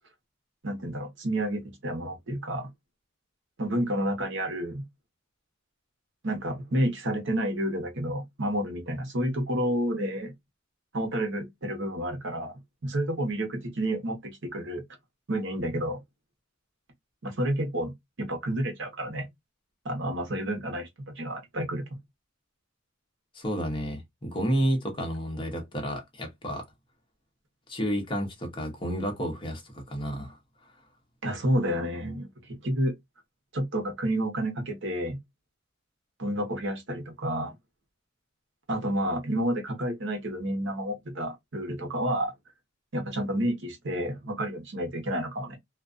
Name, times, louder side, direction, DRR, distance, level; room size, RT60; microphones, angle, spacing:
voice 1, 0.6-2.7 3.6-4.8 6.2-10.3 10.9-14.8 15.3-16.0 17.2-17.9 18.2-19.3 19.8-22.0 31.2-32.9 33.5-35.2 36.2-37.6 38.7-42.3 42.9-45.6, right 1 dB, 65° right, 0.9 m, -30 dB
voice 2, 23.3-26.7 27.7-30.4, equal, 25° left, 0.8 m, -31 dB
2.4 x 2.3 x 2.4 m
head